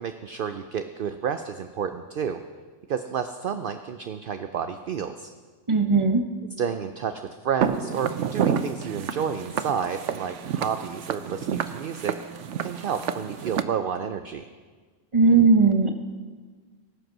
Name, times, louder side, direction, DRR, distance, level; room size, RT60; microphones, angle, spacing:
voice 1, 0.0-2.4 2.9-5.3 6.6-12.2 12.6-14.5, right 7 dB, 55° right, 8 dB, 0.7 m, -30 dB
voice 2, 5.7-6.2 15.1-15.9, right 4 dB, 25° right, 6 dB, 0.9 m, -18 dB
Walk footsteps, 7.6-13.6, right 8 dB, 75° right, 1.0 m, -29 dB
19.5 x 7.9 x 6.1 m, 1.5 s
omnidirectional pair, 1.3 m